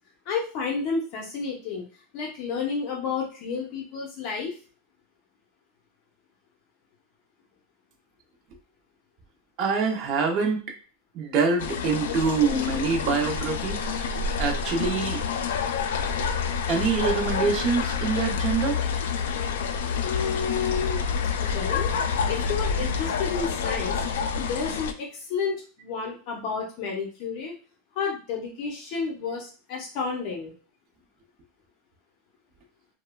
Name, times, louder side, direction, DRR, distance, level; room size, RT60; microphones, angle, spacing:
voice 1, 0.3-1.8 2.1-4.6 20.0-21.0 21.4-21.9 22.3-24.0 24.4-27.6 28.0-30.5, left 5 dB, 45° left, 0 dB, 0.6 m, -31 dB
voice 2, 9.6-10.6 11.1-14.0 14.4-15.2 16.7-18.8, right 5 dB, 40° right, 2 dB, 0.6 m, -25 dB
sound 1, 11.6-24.9, left 6 dB, 85° left, 0.3 m, -28 dB
3.1 x 2.1 x 2.2 m, 0.37 s
supercardioid pair, 150°, 0 cm